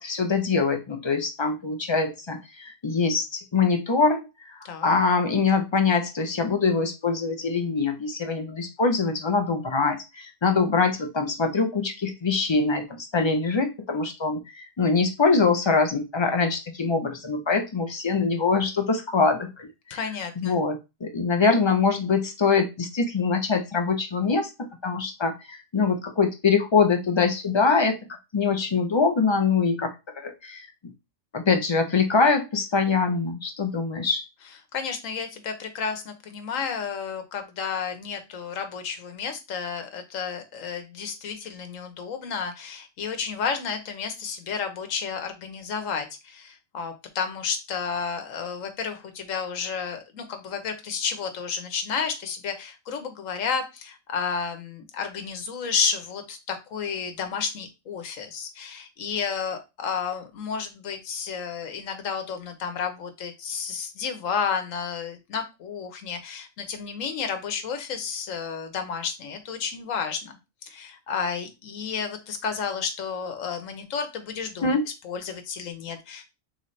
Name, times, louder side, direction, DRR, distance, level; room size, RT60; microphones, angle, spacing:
voice 1, 0.0-20.0 20.4-28.0 28.3-30.7 31.3-34.2 74.6-74.8, left 4 dB, 45° left, 0.3 m, -24 dB
voice 2, 19.9-20.5 34.7-70.3 70.6-74.8 75.0-76.3, left 6 dB, 75° left, 1.2 m, -31 dB
3.8 x 3.2 x 4.0 m
omnidirectional pair, 1.4 m